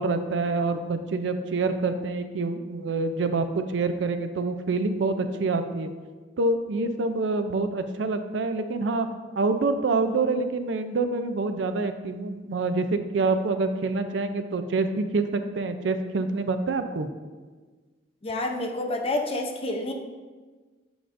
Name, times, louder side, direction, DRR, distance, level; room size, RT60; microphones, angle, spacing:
voice 1, 0.0-5.9 6.4-9.1 9.4-17.1, right 3 dB, 70° right, 8 dB, 0.4 m, -26 dB
voice 2, 18.2-19.9, left 2 dB, 30° left, 3 dB, 0.6 m, -28 dB
7.8 x 4.9 x 2.5 m, 1.4 s
head